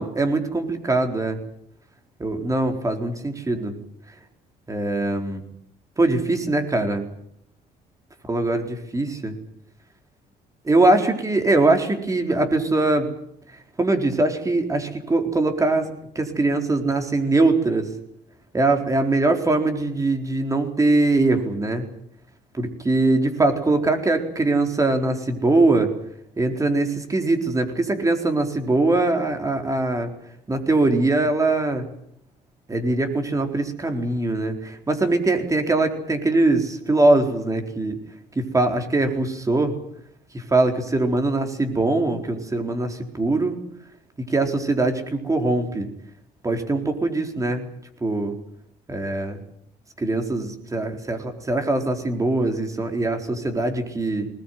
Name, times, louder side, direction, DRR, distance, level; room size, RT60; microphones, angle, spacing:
voice 1, 0.0-1.4 2.2-3.8 4.7-5.4 6.0-7.1 8.3-9.3 10.6-13.1 13.8-15.9 16.1-17.9 18.5-21.9 22.5-25.9 26.4-30.1 30.5-31.9 32.7-38.0 38.4-39.7 40.3-43.6 44.3-45.9 46.4-47.7 48.0-48.3 48.9-49.4 50.0-54.3, right 2 dB, 20° right, 5 dB, 4.4 m, -22 dB
20.5 x 20.0 x 9.4 m, 0.72 s
cardioid pair, 110°, 17 cm